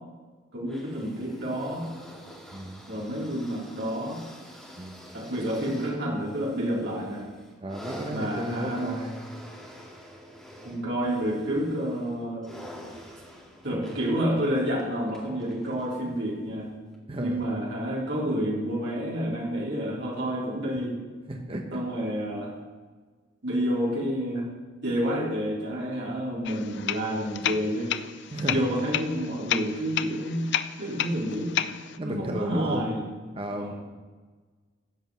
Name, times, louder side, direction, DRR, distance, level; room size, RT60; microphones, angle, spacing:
voice 1, 0.5-1.9 2.9-4.2 5.1-7.3 8.1-9.0 10.6-12.5 13.6-16.7 17.2-20.9 21.7-22.5 23.4-24.5 24.8-27.9 28.5-30.5 30.8-31.6 32.0-33.0 33.5-33.7, equal, 65° right, -5 dB, 3.8 m, -29 dB
sound 1, 0.6-16.1 16.9-17.0, equal, 5° left, 2.2 m, -46 dB
voice 2, 2.5-2.8 4.8-5.0 7.6-9.2 17.1-17.4 21.3-21.8 28.3-28.6 32.0-33.0 33.3-33.7, right 1 dB, 30° right, 2 dB, 0.9 m, -33 dB
sound 2, 26.4-32.0, left 11 dB, 65° left, 0.4 m, -32 dB
13.0 x 5.3 x 7.9 m, 1.4 s
head